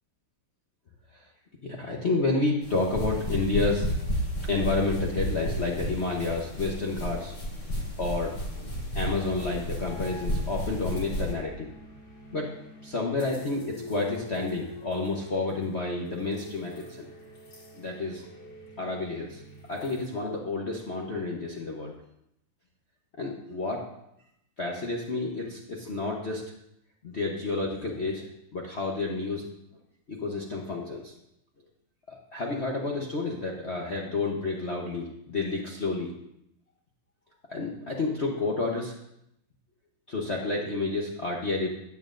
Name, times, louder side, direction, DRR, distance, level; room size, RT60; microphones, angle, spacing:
voice 1, 1.6-3.9 4.5-7.3 8.0-8.3 8.9-11.7 12.3-12.5 12.8-16.9 17.8-18.2 18.8-19.4 19.7-21.9 23.2-23.8 24.6-26.4 27.0-28.2 28.5-29.5 30.2-31.1 32.1-36.1 37.5-38.9 40.1-41.7, left 3 dB, 45° left, -2 dB, 1.0 m, -30 dB
sound 1, 2.6-11.3, equal, 85° left, 5.0 m, -32 dB
sound 2, 9.0-20.1, left 1 dB, 65° left, 2.6 m, -45 dB
13.5 x 9.6 x 2.6 m, 0.79 s
omnidirectional pair, 2.4 m